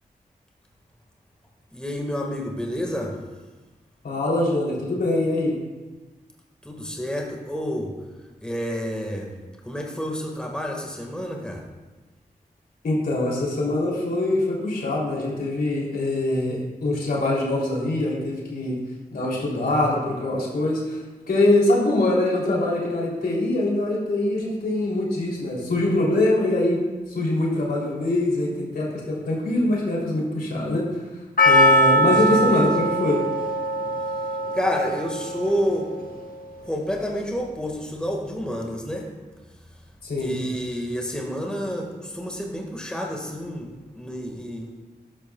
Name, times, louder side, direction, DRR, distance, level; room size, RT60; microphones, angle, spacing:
voice 1, 1.7-3.1 6.6-7.9 8.4-9.3 9.6-11.7 32.1-32.8 34.5-35.9 36.6-39.1 40.2-43.7 43.9-44.7, equal, 5° left, 0 dB, 1.7 m, -29 dB
voice 2, 4.0-5.5 12.8-18.8 19.1-21.0 21.3-26.8 27.1-30.8 31.4-33.2 40.0-40.4, left 2 dB, 80° left, -4 dB, 3.2 m, -23 dB
Percussion, 31.4-35.7 36.0-36.1, equal, 65° left, 1.4 m, -21 dB
12.5 x 11.0 x 2.3 m, 1.2 s
wide cardioid pair, 75°, 16 cm